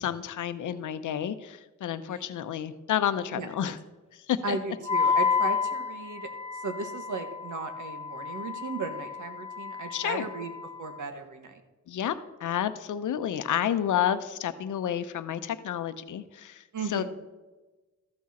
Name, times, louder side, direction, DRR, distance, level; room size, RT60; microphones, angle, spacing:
voice 1, 0.0-3.8 4.3-4.6 9.9-10.3 11.9-12.1 12.4-16.6 16.9-17.1, left 10 dB, 75° left, 11 dB, 0.7 m, -30 dB
voice 2, 4.4-6.3 6.5-10.5 10.8-11.6 16.7-17.1, right 4 dB, 70° right, 7 dB, 1.3 m, -36 dB
Wind instrument woodwind instrument, 4.8-11.0, left 6 dB, 20° left, 0.5 m, -31 dB
13.5 x 6.3 x 4.2 m, 1.2 s
wide cardioid pair, 150°, 31 cm